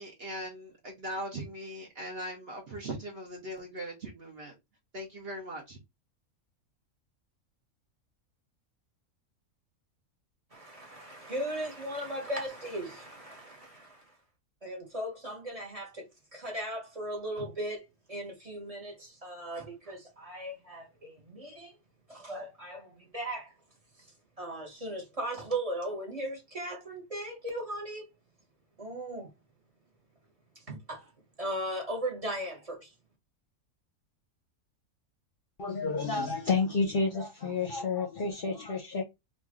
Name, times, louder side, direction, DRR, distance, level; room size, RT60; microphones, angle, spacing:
voice 1, 0.0-4.5 4.9-5.8, right 1 dB, 50° right, 0.9 m, -40 dB
voice 2, 10.5-14.1 14.6-16.1 16.3-21.7 22.1-23.5 24.0-24.1 24.4-28.1 28.8-29.3 30.5-31.1 31.4-32.9, right 1 dB, 25° right, 1.3 m, -37 dB
voice 3, 35.6-39.0, left 4 dB, 50° left, 0.8 m, -30 dB
3.0 x 2.6 x 3.6 m
omnidirectional pair, 1.5 m